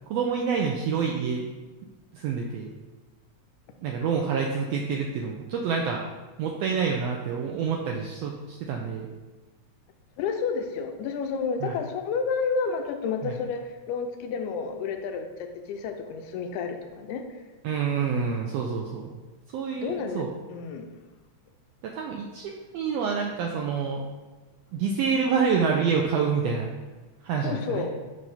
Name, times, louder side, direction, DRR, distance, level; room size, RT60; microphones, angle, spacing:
voice 1, 0.1-1.5 2.1-2.7 3.8-6.0 6.4-9.1 11.6-11.7 13.2-13.3 17.6-19.1 19.5-20.3 21.8-24.0 24.7-26.7 27.2-27.9, right 6 dB, 80° right, 0 dB, 1.4 m, -27 dB
voice 2, 10.2-17.2 19.8-20.9 27.4-27.9, left 5 dB, 85° left, 5 dB, 1.9 m, -30 dB
7.3 x 2.6 x 5.5 m, 1.2 s
omnidirectional pair, 3.4 m